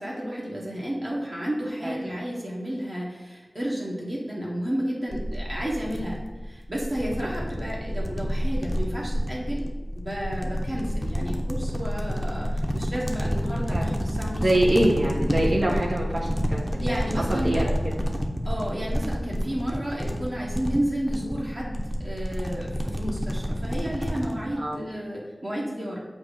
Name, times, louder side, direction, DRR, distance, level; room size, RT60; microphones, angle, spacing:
voice 1, 0.0-9.7 9.9-14.8 16.8-17.6 18.4-26.0, equal, 40° right, -5 dB, 1.3 m, -32 dB
sound 1, 5.1-24.4, equal, 5° right, 0.7 m, -29 dB
voice 2, 14.4-16.2 16.5-17.0 17.3-17.6 24.5-24.8, right 1 dB, 70° right, -4 dB, 1.1 m, -24 dB
7.1 x 2.7 x 5.0 m, 1.3 s
wide cardioid pair, 55°, 0 cm